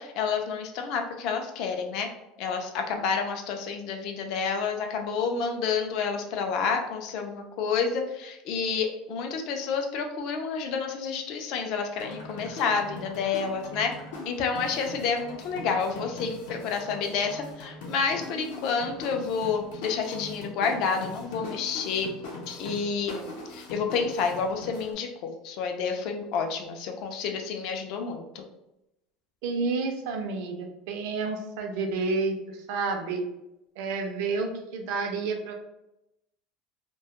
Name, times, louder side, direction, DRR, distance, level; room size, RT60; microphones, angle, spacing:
voice 1, 0.0-2.1 2.4-13.9 14.3-22.1 22.5-28.4, left 5 dB, 50° left, 4 dB, 0.3 m, -29 dB
sound 1, 12.0-24.9, left 2 dB, 85° left, 0.7 m, -41 dB
voice 2, 29.4-33.2 33.8-35.5, right 4 dB, 70° right, 4 dB, 0.4 m, -30 dB
2.1 x 2.1 x 2.8 m, 0.89 s
cardioid pair, 165°, 0 cm